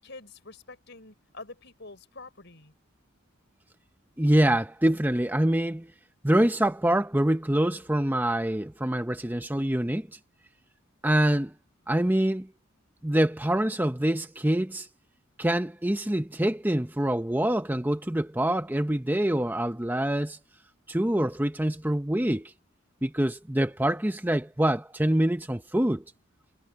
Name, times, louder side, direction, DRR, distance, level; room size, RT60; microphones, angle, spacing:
voice 1, 0.0-2.7, left 3 dB, 60° left, 5.6 m, -46 dB
voice 2, 4.2-5.9 6.2-10.1 11.0-11.5 11.9-12.5 13.0-14.9 15.4-20.4 20.9-22.5 23.0-26.0, right 1 dB, 10° right, 0.8 m, -25 dB
head